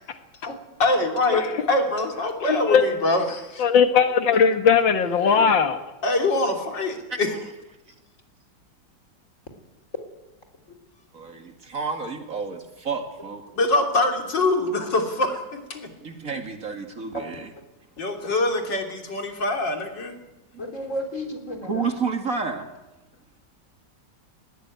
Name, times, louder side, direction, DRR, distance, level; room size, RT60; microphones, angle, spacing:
voice 1, 0.8-3.6 6.0-7.3 13.6-15.4 15.7-15.9 18.0-20.2, left 2 dB, 70° left, 3 dB, 3.9 m, -24 dB
voice 2, 2.4-2.8 3.6-5.7, left 6 dB, 90° left, 8 dB, 2.2 m, -19 dB
voice 3, 5.2-5.5 17.1-17.2 20.6-21.9, equal, 40° left, 5 dB, 4.3 m, -33 dB
voice 4, 11.1-13.4 16.0-17.1 21.7-22.7, right 5 dB, 45° right, 5 dB, 2.5 m, -30 dB
20.0 x 17.5 x 9.5 m, 1.0 s
omnidirectional pair, 2.0 m